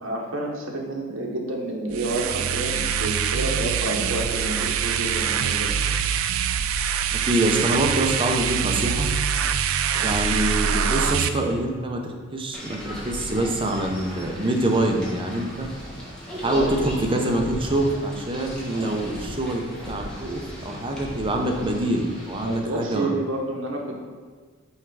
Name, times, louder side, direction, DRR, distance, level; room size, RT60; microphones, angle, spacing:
voice 1, 0.0-5.7 9.9-10.2 16.5-16.7 18.7-19.0 22.4-24.1, right 2 dB, 70° right, 0 dB, 1.1 m, -29 dB
sound 1, 1.9-11.3, right 7 dB, 90° right, 0.4 m, -24 dB
voice 2, 7.1-9.1 10.0-15.7 16.4-23.1, right 1 dB, 25° right, 2 dB, 0.7 m, -25 dB
sound 2, 12.5-22.6, equal, 5° left, 1.3 m, -36 dB
5.7 x 4.5 x 4.7 m, 1.5 s
head